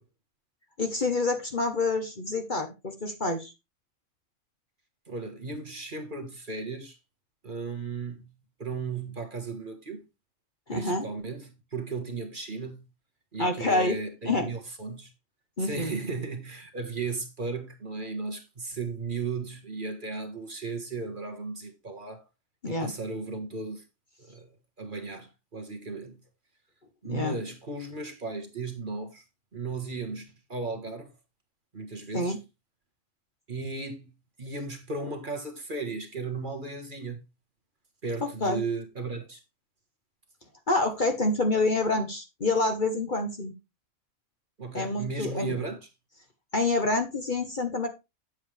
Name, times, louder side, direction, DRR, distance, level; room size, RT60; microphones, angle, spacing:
voice 1, 0.8-3.5 10.7-11.0 13.4-14.0 14.2-14.5 15.6-15.9 22.6-22.9 27.1-27.4 32.1-32.4 38.4-38.6 40.7-43.5 44.7-45.6 46.5-47.9, left 2 dB, 40° left, 1.2 m, -27 dB
voice 2, 5.1-7.0 7.4-10.0 10.7-12.9 13.3-15.1 15.6-22.2 22.7-23.8 24.2-26.2 27.0-29.2 29.5-31.1 31.7-32.4 33.5-37.2 38.0-39.4 44.6-45.9, right 4 dB, 40° right, 1.4 m, -35 dB
9.2 x 7.6 x 3.3 m
omnidirectional pair, 1.5 m